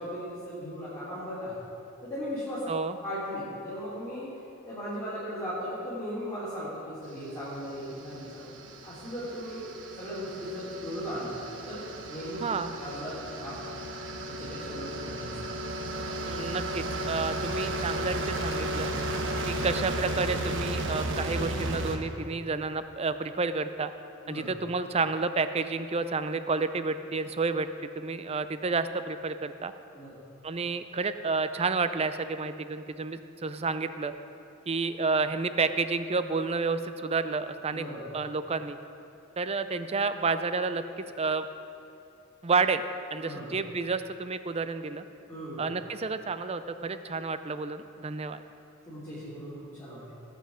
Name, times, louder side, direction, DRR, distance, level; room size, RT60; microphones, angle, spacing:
voice 1, 0.0-1.5 2.0-2.7 3.0-4.3 4.7-9.6 10.0-11.3 11.7-12.4 12.8-13.6 14.4-15.3 24.2-24.5 29.9-30.2 37.7-38.1 43.2-43.5 45.3-45.7 48.9-50.0, equal, 15° left, -12 dB, 3.2 m, -37 dB
sound 1, 7.3-22.0, right 1 dB, 60° right, 1.1 m, -34 dB
voice 2, 12.4-12.7 16.3-18.9 19.5-23.9 24.3-27.7 28.0-29.7 30.4-34.1 34.7-37.9 38.1-38.8 39.4-41.5 42.4-42.8 43.1-45.0 45.6-48.4, right 4 dB, 30° right, 11 dB, 0.5 m, -30 dB
18.0 x 7.6 x 5.0 m, 2.7 s
head